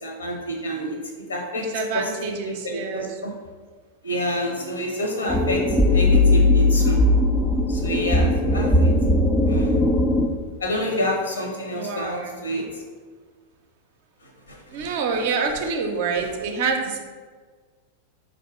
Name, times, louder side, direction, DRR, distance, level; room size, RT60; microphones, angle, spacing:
voice 1, 0.0-1.0 1.3-1.7 1.9-3.3 4.0-7.0 7.7-8.9 9.4-9.8 10.6-12.8 14.2-15.6 16.2-16.3, equal, 75° left, 1 dB, 0.7 m, -29 dB
voice 2, 1.6-3.1 11.7-12.3 14.7-17.0, right 5 dB, 50° right, 4 dB, 0.5 m, -27 dB
sound 1, 5.3-10.3, left 1 dB, 10° left, 0.3 m, -18 dB
4.0 x 2.4 x 3.5 m, 1.5 s
figure-of-eight pair, 90°, 0 cm